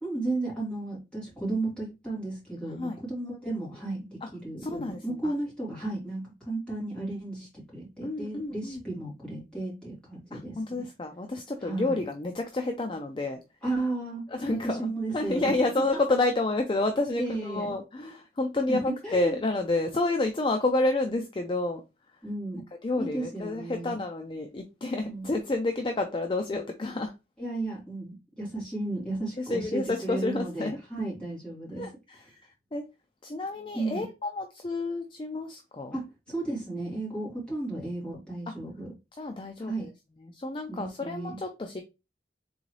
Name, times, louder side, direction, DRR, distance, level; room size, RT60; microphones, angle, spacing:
voice 1, 0.0-10.9 11.6-12.0 13.6-14.2 14.5-15.5 15.9-16.0 17.2-17.7 18.7-19.4 22.2-22.6 23.0-24.0 25.0-25.3 27.4-31.9 33.7-34.1 35.9-38.9 39.6-39.9 40.7-41.4, right 2 dB, 5° left, 2.5 m, -34 dB
voice 2, 4.6-5.0 8.0-8.8 10.3-13.4 14.3-14.9 15.1-21.8 22.8-27.1 29.5-30.8 31.7-32.2 32.7-32.8 33.2-36.0 39.2-39.9 40.2-41.8, left 2 dB, 30° left, 0.4 m, -29 dB
3.9 x 3.8 x 3.1 m
head